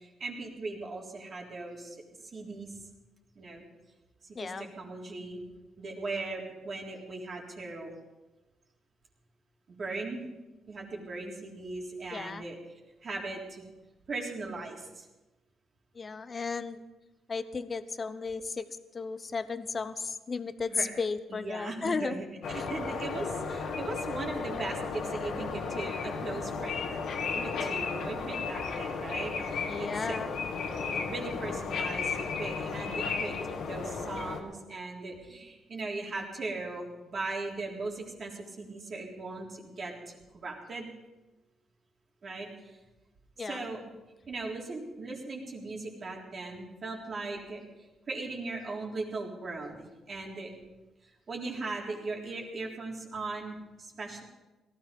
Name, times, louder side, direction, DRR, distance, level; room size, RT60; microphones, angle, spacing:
voice 1, 0.0-2.0 2.2-2.7 3.4-3.6 4.3-5.4 5.8-7.9 9.7-10.3 10.7-12.6 13.0-13.6 14.1-15.1 20.7-20.9 21.3-26.9 27.2-30.2 30.9-33.4 33.7-40.9 42.2-42.8 43.4-43.8 44.3-47.6 48.1-49.8 50.1-50.5 51.0-54.2, right 3 dB, 45° right, -1 dB, 3.7 m, -38 dB
voice 2, 4.3-4.7 12.1-12.4 16.0-16.8 17.3-18.6 18.9-22.2 22.5-22.8 29.7-30.3 43.4-43.7, left 4 dB, 35° left, 13 dB, 0.9 m, -34 dB
sound 1, 22.4-34.4, left 5 dB, 75° left, 2.2 m, -34 dB
18.0 x 14.0 x 5.4 m, 1.1 s
cardioid pair, 90°, 0 cm